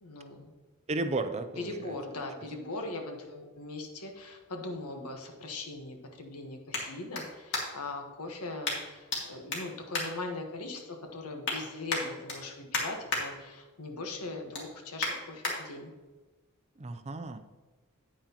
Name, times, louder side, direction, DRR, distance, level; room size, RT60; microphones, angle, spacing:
voice 1, 0.0-0.5 1.6-15.9, left 2 dB, 85° left, 3 dB, 1.4 m, -40 dB
voice 2, 0.9-2.0 16.8-17.4, right 2 dB, 30° right, 9 dB, 0.5 m, -34 dB
sound 1, 3.9-8.0 8.6-9.2 9.5-10.8 11.2-11.6 11.9-13.2 13.6-13.9 14.2-15.5 16.1-16.2, left 3 dB, 55° left, 2.1 m, -35 dB
9.1 x 9.0 x 3.0 m, 1.2 s
head